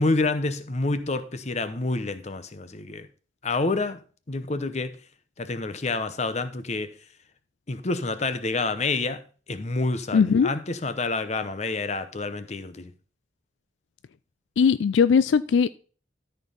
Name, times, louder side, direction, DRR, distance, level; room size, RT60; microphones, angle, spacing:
voice 1, 0.0-3.1 3.4-4.0 4.3-5.0 5.4-6.9 7.7-9.2 9.5-12.9, left 3 dB, 35° left, 0.8 m, -28 dB
voice 2, 10.1-10.5 14.6-15.7, left 6 dB, 75° left, 0.3 m, -19 dB
13.0 x 4.5 x 5.4 m
head